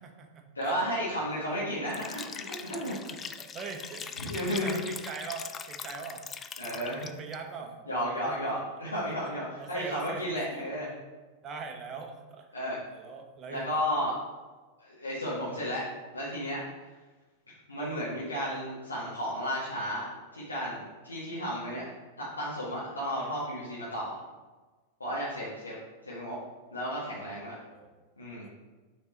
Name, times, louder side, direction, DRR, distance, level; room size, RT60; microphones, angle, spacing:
voice 1, 0.0-1.0 2.9-8.5 9.1-9.2 9.6-10.7 11.4-12.5 12.9-13.8 27.2-27.9 28.4-28.5, right 5 dB, 25° right, 3 dB, 1.0 m, -43 dB
voice 2, 0.5-2.9 4.2-4.7 6.6-7.1 7.9-10.9 12.5-12.8 13.5-14.1 14.8-15.8 16.1-16.6 17.7-20.1 20.3-21.8 22.2-24.2 25.0-25.7 26.0-26.4 26.7-27.5 28.2-28.5, equal, 80° left, -9 dB, 1.6 m, -33 dB
Liquid, 1.9-7.4, left 6 dB, 20° left, 0.4 m, -41 dB
6.6 x 4.0 x 4.4 m, 1.3 s
figure-of-eight pair, 90°, 0 cm